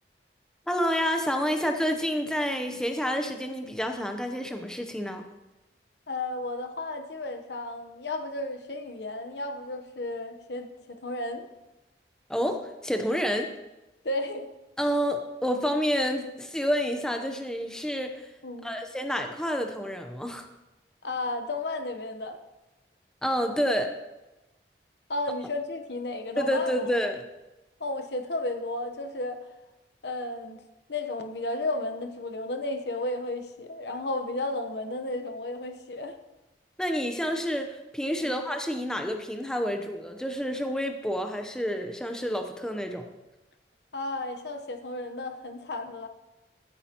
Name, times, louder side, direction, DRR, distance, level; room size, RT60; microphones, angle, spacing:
voice 1, 0.7-5.2 12.3-13.5 14.8-18.3 18.6-20.5 23.2-23.9 26.4-27.2 36.8-43.1, equal, 5° left, 5 dB, 0.8 m, -29 dB
voice 2, 6.1-11.4 14.0-14.5 18.4-18.7 21.0-22.4 25.1-26.7 27.8-29.4 30.0-30.6 30.9-36.2 38.2-38.4 43.9-46.1, left 2 dB, 75° left, 7 dB, 1.0 m, -33 dB
15.5 x 9.6 x 3.0 m, 1.0 s
head